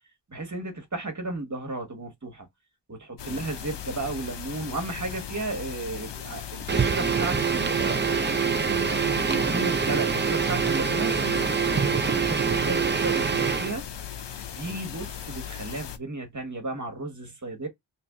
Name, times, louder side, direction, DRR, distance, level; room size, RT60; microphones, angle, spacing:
voice 1, 0.3-2.5 2.9-8.0 9.3-11.2 11.7-13.8 14.5-17.7, right 2 dB, 45° right, 1.2 m, -34 dB
sound 1, 3.2-16.0, left 9 dB, 80° left, 0.6 m, -38 dB
voice 2, 5.3-5.6 8.6-9.6 10.6-11.9 14.6-14.9, left 3 dB, 45° left, 1.1 m, -45 dB
sound 2, 6.7-13.8, right 6 dB, 25° right, 0.4 m, -25 dB
3.0 x 2.5 x 3.5 m
wide cardioid pair, 50°, 42 cm